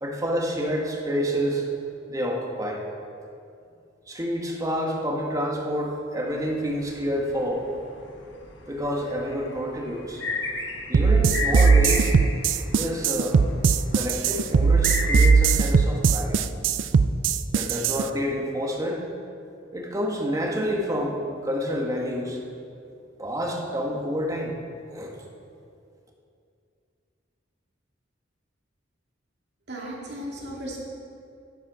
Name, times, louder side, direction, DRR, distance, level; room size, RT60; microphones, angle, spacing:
voice 1, 0.0-1.7 2.1-2.8 4.1-7.6 8.7-10.2 10.9-12.1 12.7-13.5 13.9-16.4 17.5-19.0 19.7-22.4 23.2-24.5 24.9-25.2, equal, 20° right, -1 dB, 1.5 m, -28 dB
sound 1, 6.3-15.3, left 3 dB, 70° left, 1.4 m, -34 dB
sound 2, 10.9-18.0, right 5 dB, 80° right, 0.4 m, -19 dB
voice 2, 29.7-30.8, equal, 60° right, -4 dB, 2.6 m, -35 dB
12.0 x 9.9 x 5.0 m, 2.5 s
head